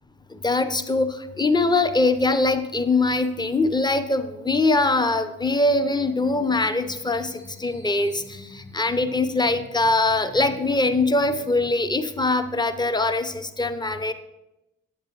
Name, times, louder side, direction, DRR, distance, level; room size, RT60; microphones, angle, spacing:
voice 1, 0.3-14.1, left 2 dB, 15° left, 10 dB, 0.7 m, -22 dB
sound 1, 5.8-11.7, left 1 dB, 45° left, 2.4 m, -47 dB
8.8 x 8.1 x 3.0 m, 0.94 s
hypercardioid pair, 40°, 30 cm